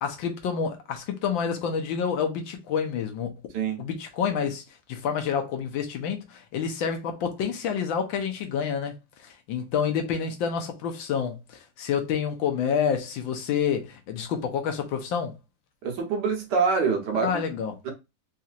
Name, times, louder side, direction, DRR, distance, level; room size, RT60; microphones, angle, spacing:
voice 1, 0.0-3.3 3.8-4.6 4.9-8.9 9.2-15.3 17.1-17.7, left 7 dB, 90° left, 1.5 m, -28 dB
voice 2, 15.8-17.4 17.8-17.9, right 5 dB, 65° right, 1.6 m, -25 dB
4.2 x 2.8 x 2.4 m
omnidirectional pair, 2.1 m